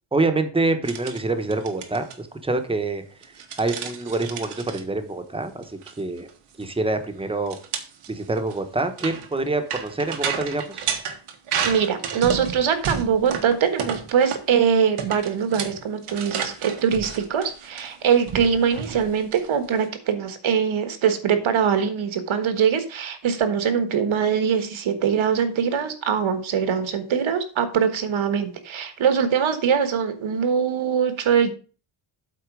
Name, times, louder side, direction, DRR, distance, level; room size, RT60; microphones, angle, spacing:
voice 1, 0.1-3.0 3.6-6.3 6.6-7.5 8.1-10.9, right 2 dB, 10° right, 8 dB, 1.0 m, -26 dB
sound 1, 0.8-1.2 1.5-2.1 3.2-4.8 5.6-5.9 6.2-6.3 6.6-6.7 7.5-14.6 15.0-19.9, right 7 dB, 85° right, 1.5 m, -32 dB
voice 2, 11.6-31.5, right 7 dB, 70° right, 9 dB, 1.5 m, -22 dB
8.3 x 4.4 x 6.1 m, 0.38 s
wide cardioid pair, 130°, 50 cm